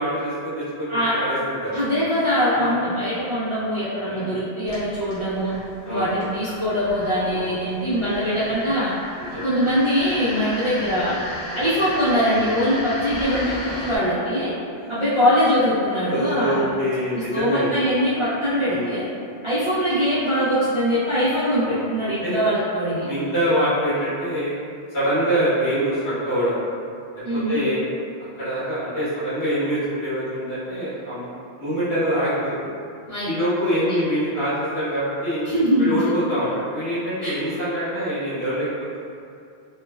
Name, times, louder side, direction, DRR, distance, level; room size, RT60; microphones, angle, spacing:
voice 1, 0.0-1.7 2.5-2.7 4.0-4.4 5.8-6.2 7.3-7.5 9.2-9.5 11.5-11.9 13.6-13.7 16.0-17.8 18.6-18.9 21.6-21.9 22.2-22.5 23.0-24.6 24.9-26.6 27.3-27.8 28.4-32.7 33.2-35.4 35.8-39.0, equal, 85° left, -12 dB, 1.4 m, -25 dB
voice 2, 1.7-5.5 5.9-8.9 9.4-11.2 11.5-13.5 13.8-14.5 14.9-16.7 17.1-19.1 19.4-23.1 27.2-27.6 33.1-33.3 33.7-34.0 35.5-35.9 37.2-37.3, equal, 45° right, -13 dB, 0.4 m, -22 dB
sound 1, 4.6-14.0, equal, 30° left, 0.7 m, -35 dB
3.0 x 2.0 x 2.2 m, 2.5 s
omnidirectional pair, 1.1 m